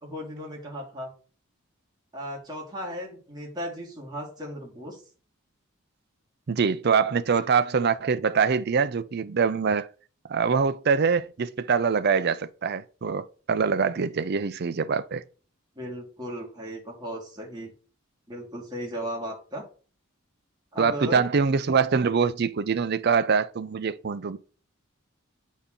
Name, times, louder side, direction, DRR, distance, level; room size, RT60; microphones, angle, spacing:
voice 1, 0.0-1.1 2.1-5.0 15.8-17.7 18.3-19.6 20.7-21.2, equal, 20° right, 2.2 m, -36 dB
voice 2, 6.5-9.9 10.3-15.2 20.8-24.4, right 5 dB, 50° right, 0.5 m, -24 dB
8.2 x 4.1 x 3.7 m
head